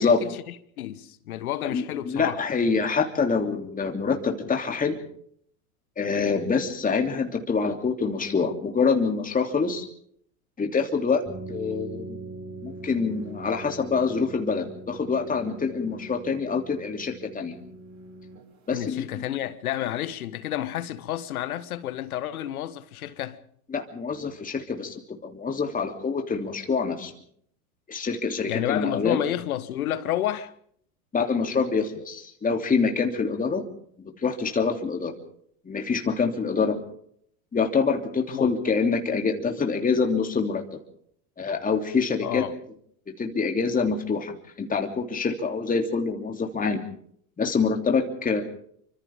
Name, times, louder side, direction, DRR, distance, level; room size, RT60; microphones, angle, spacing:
voice 1, 0.0-2.4 18.7-23.4 28.5-30.5 38.3-38.5 42.2-42.5, left 12 dB, 75° left, 1.5 m, -30 dB
voice 2, 1.6-5.0 6.0-9.8 10.6-12.2 12.6-17.6 18.7-19.2 23.7-27.1 27.9-29.2 31.1-33.6 34.0-35.1 35.6-36.8 37.5-40.8 41.4-42.5 43.2-46.8 47.4-48.4, left 5 dB, 20° left, 3.0 m, -26 dB
sound 1, 11.3-18.7, right 2 dB, 40° right, 5.8 m, -41 dB
28.0 x 25.0 x 3.6 m
hypercardioid pair, 90°, 43 cm